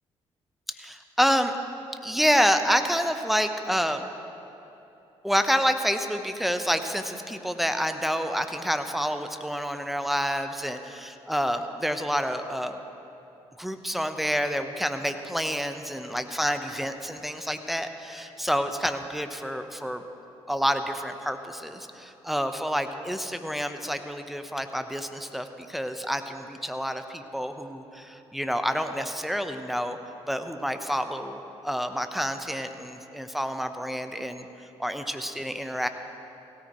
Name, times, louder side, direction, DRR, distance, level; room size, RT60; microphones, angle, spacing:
voice 1, 0.8-1.5 2.0-4.0 5.2-10.8 11.3-12.8 13.6-20.0 20.5-30.0 30.3-34.5 34.8-35.9, equal, ahead, 7 dB, 1.0 m, -28 dB
17.0 x 13.5 x 3.1 m, 2.9 s
hypercardioid pair, 45°, 14 cm